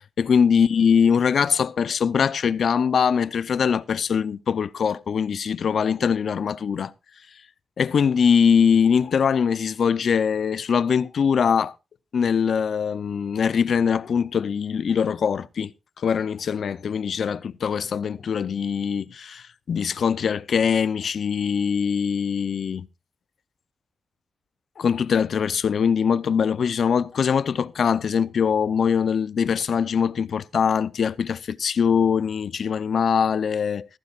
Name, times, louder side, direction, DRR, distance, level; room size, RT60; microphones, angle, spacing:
voice 1, 0.2-6.9 7.8-11.7 12.1-15.7 16.0-22.9 24.8-33.9, left 7 dB, 65° left, 0.6 m, -22 dB
15.0 x 14.5 x 2.4 m
wide cardioid pair, 105°, 0 cm